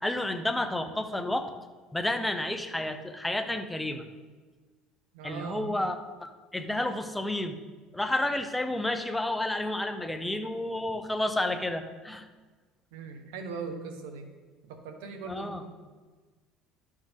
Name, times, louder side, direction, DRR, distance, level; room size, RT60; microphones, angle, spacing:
voice 1, 0.0-1.5 1.9-4.1 5.2-7.6 7.9-12.3 15.3-15.6, left 1 dB, 5° left, 6 dB, 0.7 m, -31 dB
voice 2, 5.1-5.7 12.9-14.3 14.7-15.7, right 5 dB, 90° right, 6 dB, 1.1 m, -40 dB
12.0 x 6.5 x 3.6 m, 1.3 s
cardioid pair, 120°, 0 cm